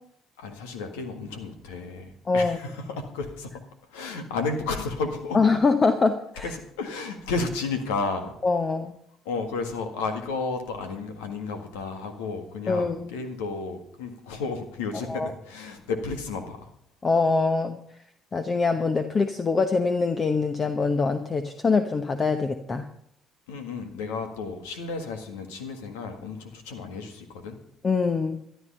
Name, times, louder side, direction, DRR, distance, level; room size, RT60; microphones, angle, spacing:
voice 1, 0.4-3.5 3.9-5.4 6.4-8.3 9.2-16.7 23.5-27.6, left 4 dB, 90° left, 6 dB, 1.7 m, -32 dB
voice 2, 2.3-2.6 5.3-6.5 8.4-8.9 12.7-13.1 15.1-15.3 17.0-17.8 18.3-22.9 27.8-28.4, left 4 dB, 35° left, 7 dB, 1.0 m, -24 dB
13.0 x 11.0 x 5.5 m, 0.68 s
supercardioid pair, 65°, 0 cm